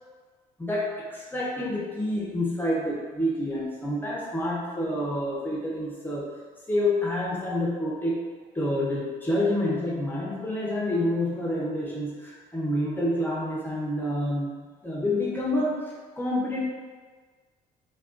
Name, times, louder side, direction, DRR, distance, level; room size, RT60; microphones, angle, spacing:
voice 1, 0.6-6.3 6.7-8.2 8.5-14.5 14.8-16.6, left 1 dB, 10° left, -6 dB, 0.6 m, -28 dB
3.4 x 2.2 x 2.4 m, 1.4 s
cardioid pair, 110°, 17 cm